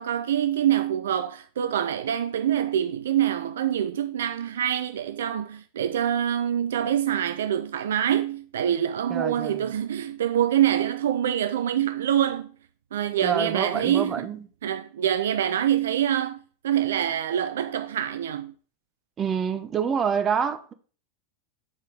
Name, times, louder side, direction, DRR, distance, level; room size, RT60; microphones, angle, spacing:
voice 1, 0.0-12.5 12.9-14.3 14.6-18.5, right 10 dB, 60° right, 0.4 m, -25 dB
voice 2, 9.1-9.7 13.2-14.4 19.2-20.7, right 7 dB, 25° right, 0.8 m, -27 dB
7.2 x 4.5 x 4.7 m
figure-of-eight pair, 90°, 0 cm